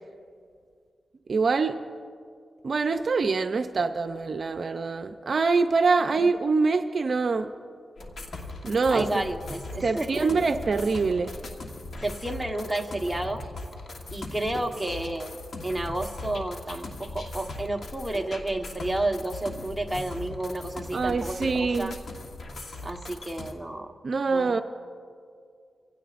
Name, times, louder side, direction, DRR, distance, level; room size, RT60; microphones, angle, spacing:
voice 1, 1.3-1.8 2.6-7.5 8.6-9.2 9.8-11.4 20.9-21.9 24.0-24.6, right 4 dB, 55° right, 6 dB, 0.6 m, -24 dB
sound 1, 8.0-23.5, left 2 dB, 65° left, 1.4 m, -39 dB
voice 2, 8.8-10.3 12.0-13.4 14.1-15.4 15.6-21.9 22.8-23.9 24.3-24.5, right 1 dB, 5° right, 2 dB, 1.2 m, -31 dB
25.5 x 16.0 x 2.5 m, 2.2 s
cardioid pair, 85°, 0 cm